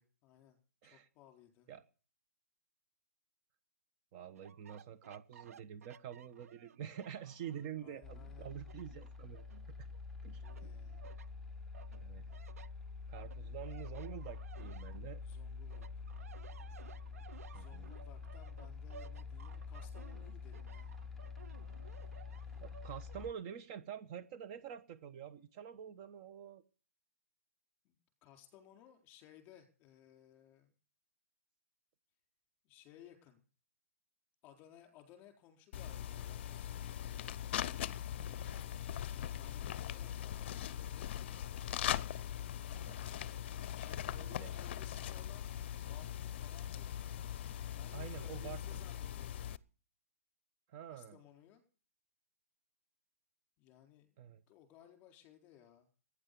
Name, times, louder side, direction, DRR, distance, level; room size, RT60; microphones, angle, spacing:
voice 1, 0.0-1.7 7.7-8.5 10.4-11.1 15.2-16.1 17.5-20.9 27.8-30.7 32.6-33.4 34.4-37.1 39.3-41.5 43.7-45.6 45.9-47.1 47.7-49.5 50.9-51.6 53.6-54.1 54.5-55.9, left 11 dB, 25° left, 4 dB, 4.1 m, -61 dB
voice 2, 4.1-9.4 9.8-9.9 10.2-10.7 11.9-12.2 13.1-15.2 17.5-17.9 22.6-26.6 38.1-38.7 42.4-43.0 44.1-44.5 47.9-48.8 50.7-51.2 54.2-54.4, right 9 dB, 30° right, 10 dB, 1.1 m, -47 dB
sound 1, 4.3-7.8 8.2-10.0 10.4-11.3 11.7-15.4 15.7-23.3, right 7 dB, 70° right, 0.7 m, -58 dB
sound 2, 8.0-23.3, left 4 dB, 5° left, 0.9 m, -47 dB
sound 3, 35.7-49.6, left 10 dB, 45° left, 0.7 m, -41 dB
17.5 x 10.0 x 6.9 m, 0.38 s
hypercardioid pair, 155°, 8 cm